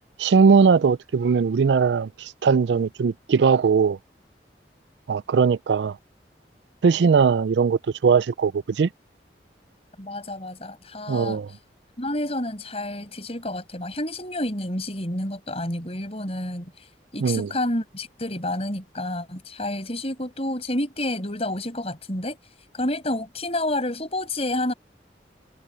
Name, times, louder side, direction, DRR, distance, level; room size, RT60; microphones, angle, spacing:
voice 1, 0.2-4.0 5.1-6.0 6.8-8.9 11.1-11.5 17.2-17.5, right 5 dB, 80° right, 0.4 m, -20 dB
voice 2, 10.0-11.4 12.0-16.9 17.1-22.4 22.7-24.7, left 1 dB, 35° left, 6.3 m, -29 dB
head